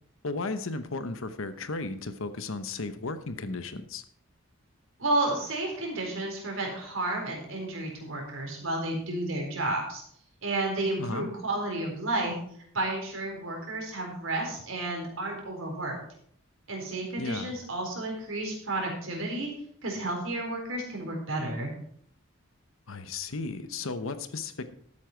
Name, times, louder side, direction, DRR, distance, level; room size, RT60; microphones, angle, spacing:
voice 1, 0.2-4.0 11.0-11.3 17.2-17.5 22.9-24.7, left 3 dB, 70° left, 11 dB, 1.0 m, -35 dB
voice 2, 5.0-10.0 10.4-12.3 12.7-16.0 16.7-19.5 19.8-21.7, right 2 dB, 70° right, 0 dB, 4.2 m, -31 dB
13.0 x 8.7 x 4.5 m, 0.63 s
head